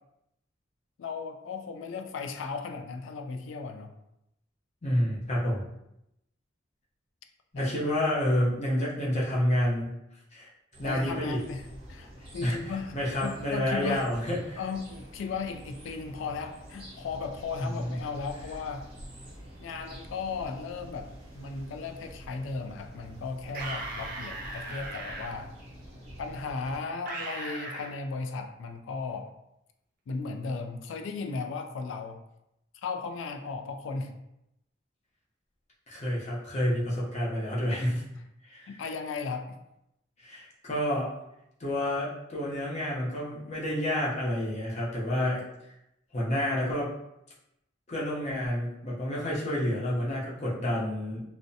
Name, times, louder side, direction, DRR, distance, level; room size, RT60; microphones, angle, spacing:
voice 1, 1.0-3.9 7.6-7.7 10.8-14.1 14.6-18.9 19.6-21.1 21.3-25.5 26.2-29.3 30.1-32.2 32.8-34.1 38.7-39.6, left 4 dB, 80° left, 5 dB, 0.3 m, -36 dB
voice 2, 4.8-5.6 7.5-9.9 10.3-10.5 10.8-11.4 12.4-12.6 12.9-14.6 17.6-18.0 35.9-38.0 38.4-38.8 40.2-41.1 41.6-45.5 46.1-46.9 47.9-51.2, left 1 dB, 35° left, -5 dB, 0.6 m, -29 dB
sound 1, 10.7-26.8, equal, 30° right, 0.8 m, -47 dB
sound 2, 23.5-25.3 27.1-27.9, right 2 dB, 45° right, 0.4 m, -37 dB
2.5 x 2.1 x 2.6 m, 0.84 s
head